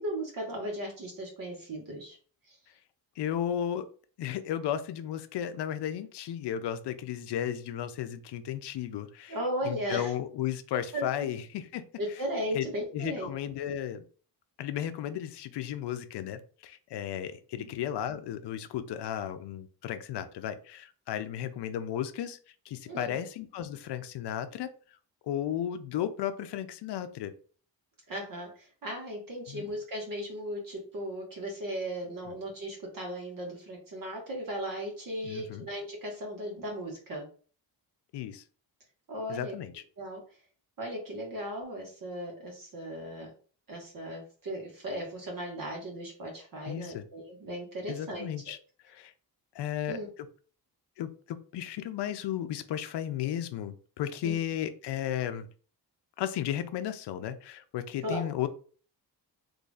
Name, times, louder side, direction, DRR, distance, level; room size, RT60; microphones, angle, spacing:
voice 1, 0.0-2.2 2.5-2.6 9.3-10.1 10.9-11.0 12.0-13.3 17.6-17.7 22.9-23.2 28.1-37.3 39.1-39.5 40.0-40.2 40.8-43.3 43.7-48.3 49.9-50.1 54.2-54.4 58.0-58.3, equal, 50° right, -1 dB, 1.5 m, -36 dB
voice 2, 3.2-3.9 4.2-9.4 9.6-11.8 12.5-12.7 12.9-14.0 14.6-22.4 22.7-24.7 25.2-27.3 29.5-29.7 32.3-32.4 35.2-35.7 38.1-38.4 39.3-39.8 46.7-47.1 47.9-48.6 48.8-49.1 49.5-50.0 51.0-55.5 56.2-58.5, left 10 dB, 75° left, 10 dB, 0.5 m, -34 dB
3.9 x 3.1 x 2.4 m, 0.41 s
wide cardioid pair, 130°, 41 cm